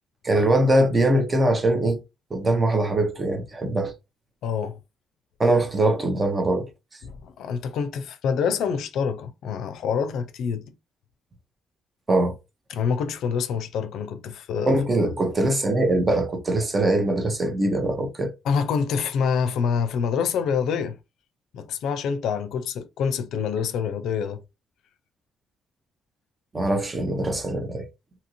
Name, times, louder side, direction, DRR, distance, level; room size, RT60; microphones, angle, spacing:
voice 1, 0.2-2.0 2.3-3.9 5.4-6.7 12.1-12.3 14.7-18.3 26.5-27.9, right 1 dB, 25° right, 0.8 m, -22 dB
voice 2, 4.4-4.8 7.0-10.7 12.7-14.8 18.4-21.0 21.5-24.4, left 6 dB, 80° left, 0.4 m, -26 dB
2.8 x 2.5 x 2.8 m
cardioid pair, 90°, 0 cm